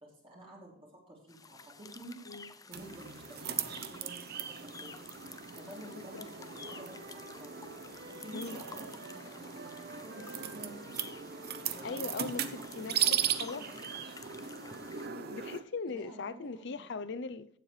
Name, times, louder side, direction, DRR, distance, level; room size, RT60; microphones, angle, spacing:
voice 1, 0.0-5.1 5.6-7.6 7.9-11.0 11.5-12.3 12.5-14.0 15.9-16.9, right 1 dB, 30° right, 3.0 m, -51 dB
sound 1, 1.3-15.1, left 4 dB, 20° left, 0.5 m, -52 dB
sound 2, 2.7-15.6, right 9 dB, 55° right, 0.8 m, -38 dB
Wind instrument woodwind instrument, 5.4-9.3 9.5-13.8, right 1 dB, 70° right, 1.9 m, -54 dB
voice 2, 5.9-6.3 8.3-8.6 11.8-13.6 15.0-17.5, left 4 dB, 65° left, 0.6 m, -40 dB
15.5 x 7.6 x 3.3 m
head